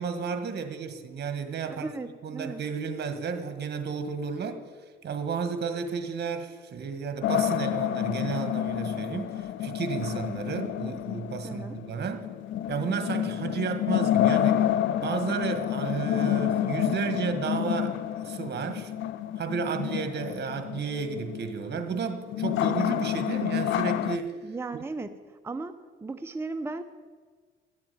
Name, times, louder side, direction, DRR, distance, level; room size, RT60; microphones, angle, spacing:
voice 1, 0.0-1.9 2.2-4.6 5.0-12.3 12.7-14.7 15.0-18.9 19.4-24.4 24.7-24.8, right 6 dB, 60° right, 8 dB, 1.5 m, -32 dB
voice 2, 1.7-2.6 11.4-11.8 24.4-26.8, right 3 dB, 10° right, 7 dB, 0.6 m, -36 dB
sound 1, 7.2-24.2, left 11 dB, 75° left, 0.5 m, -29 dB
12.0 x 7.4 x 9.3 m, 1.6 s
cardioid pair, 90°, 20 cm